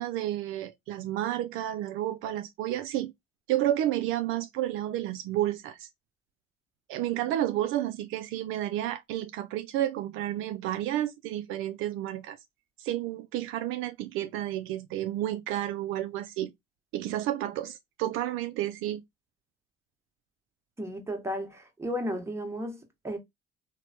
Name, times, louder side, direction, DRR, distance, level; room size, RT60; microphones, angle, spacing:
voice 1, 0.0-3.1 3.5-5.9 6.9-12.4 12.8-16.5 16.9-19.0, right 13 dB, 70° right, 0.4 m, -31 dB
voice 2, 20.8-23.2, equal, 10° right, 1.1 m, -34 dB
3.0 x 2.1 x 2.7 m
supercardioid pair, 85°, 21 cm